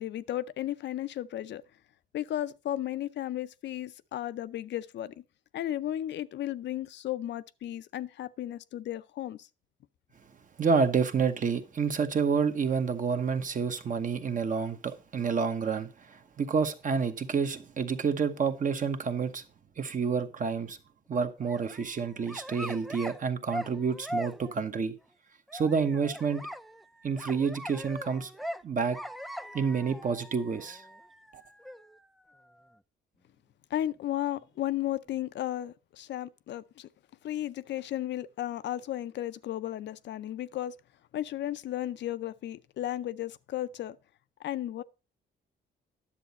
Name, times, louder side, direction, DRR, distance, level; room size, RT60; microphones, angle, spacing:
voice 1, 0.0-1.6 2.1-5.1 5.5-9.4 33.7-36.9 37.2-40.7 41.1-44.0 44.4-44.8, left 12 dB, 65° left, 0.5 m, -34 dB
voice 2, 10.6-19.4 19.8-20.8 21.1-24.9 25.5-26.4 27.0-28.3 28.6-29.0 29.5-30.8 31.3-31.4, right 5 dB, 40° right, 1.0 m, -29 dB
sound 1, 21.4-23.2 23.5-24.6 25.5-32.7, equal, ahead, 0.4 m, -41 dB
10.0 x 7.1 x 4.1 m
cardioid pair, 90°, 20 cm